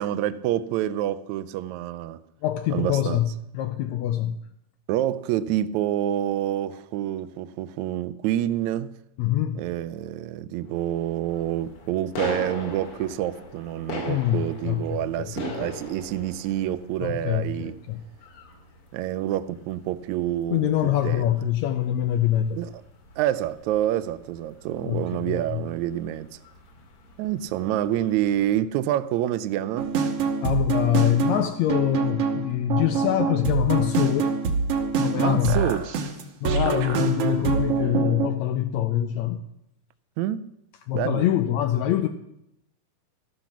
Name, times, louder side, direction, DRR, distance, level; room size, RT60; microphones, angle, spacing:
voice 1, 0.0-2.2 2.7-3.2 4.9-8.9 9.5-17.7 18.9-21.3 22.5-22.7 23.2-26.4 27.2-29.9 35.2-35.9 40.2-40.5 40.9-41.2, right 12 dB, 80° right, 1.7 m, -27 dB
voice 2, 2.4-4.4 9.2-9.6 14.1-15.3 17.0-18.0 20.5-22.6 24.8-25.6 30.4-34.3 34.9-35.6 36.4-39.4 40.9-42.1, left 12 dB, 85° left, 1.6 m, -24 dB
sound 1, 10.6-28.6, left 2 dB, 45° left, 2.6 m, -41 dB
sound 2, 29.8-38.3, right 5 dB, 60° right, 1.7 m, -25 dB
13.5 x 12.0 x 6.0 m
omnidirectional pair, 3.9 m